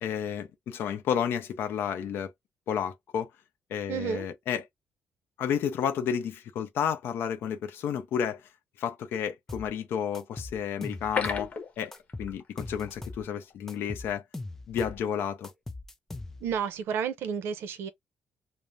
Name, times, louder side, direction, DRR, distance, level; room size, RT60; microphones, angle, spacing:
voice 1, 0.0-2.3 2.7-3.3 3.7-4.7 5.4-8.5 8.8-11.5 11.8-11.9 12.2-14.2 14.7-15.5, left 8 dB, 70° left, 0.5 m, -31 dB
voice 2, 3.9-4.3 16.4-17.9, right 7 dB, 85° right, 0.6 m, -31 dB
sound 1, 9.5-9.7 10.1-11.5 11.9-13.3 13.7-15.0 15.4-16.6, left 2 dB, 10° left, 0.4 m, -41 dB
sound 2, 10.8-12.6 12.9-13.0 13.4-13.5, left 6 dB, 35° left, 0.9 m, -33 dB
2.4 x 2.0 x 3.2 m
cardioid pair, 155°, 4 cm